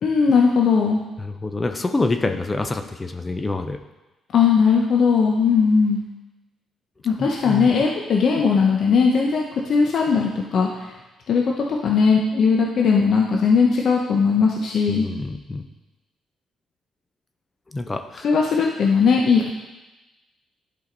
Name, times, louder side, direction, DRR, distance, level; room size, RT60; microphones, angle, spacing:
voice 1, 0.0-1.0 4.3-6.0 7.0-10.9 11.3-15.1 18.2-19.5, left 5 dB, 60° left, -1 dB, 0.9 m, -18 dB
voice 2, 1.2-3.8 7.0-7.7 14.9-15.6 17.7-18.3, left 2 dB, 25° left, 7 dB, 0.6 m, -27 dB
11.0 x 5.0 x 3.9 m, 1.1 s
cardioid pair, 90°, 0 cm